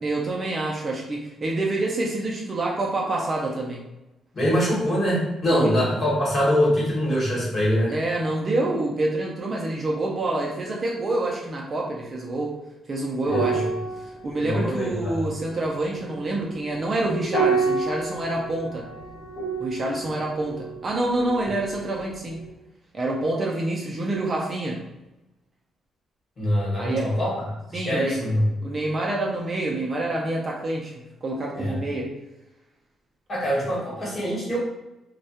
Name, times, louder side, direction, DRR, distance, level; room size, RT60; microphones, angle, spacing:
voice 1, 0.0-3.8 5.5-5.7 7.9-12.6 12.9-13.7 14.0-18.9 19.6-22.4 22.9-24.8 26.8-27.1 27.7-28.2 28.6-30.9 31.2-32.1, right 2 dB, 30° right, -2 dB, 0.4 m, -27 dB
voice 2, 4.3-7.9 13.3-13.6 14.4-15.2 26.4-27.3 27.7-28.5 31.5-31.8 33.3-34.6, equal, 30° left, -6 dB, 1.0 m, -23 dB
sound 1, 13.3-22.0 22.3-22.5, right 4 dB, 85° left, 0.9 m, -30 dB
2.2 x 2.1 x 2.7 m, 0.95 s
cardioid pair, 135°, 0 cm